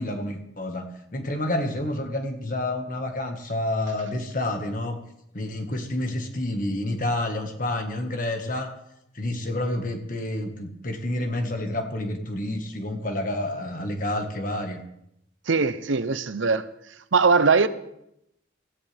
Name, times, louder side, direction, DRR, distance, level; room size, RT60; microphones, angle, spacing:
voice 1, 0.0-5.0 5.3-8.7 9.1-14.8, left 1 dB, 45° left, 1.6 m, -29 dB
voice 2, 15.5-16.6 17.1-17.7, right 4 dB, 85° right, 0.7 m, -20 dB
18.0 x 14.5 x 3.5 m
head